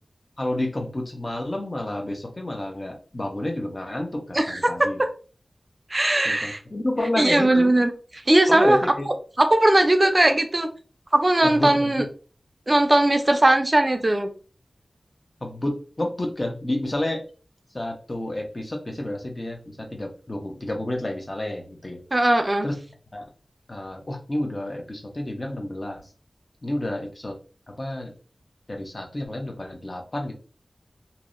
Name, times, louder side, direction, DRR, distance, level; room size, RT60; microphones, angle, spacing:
voice 1, 0.4-5.0 6.2-7.8 8.5-9.1 11.4-12.0 15.4-17.2 17.7-22.0 22.6-22.8 23.1-23.2 23.7-26.0 26.6-27.4 27.7-28.1 28.7-30.3, left 1 dB, 35° left, 2 dB, 0.5 m, -30 dB
voice 2, 5.9-6.6 7.2-7.9 8.3-8.8 9.4-10.7 11.1-12.0 12.7-14.3 22.1-22.7, right 1 dB, 30° right, 6 dB, 0.4 m, -19 dB
2.6 x 2.0 x 2.4 m, 0.38 s
wide cardioid pair, 85°, 0 cm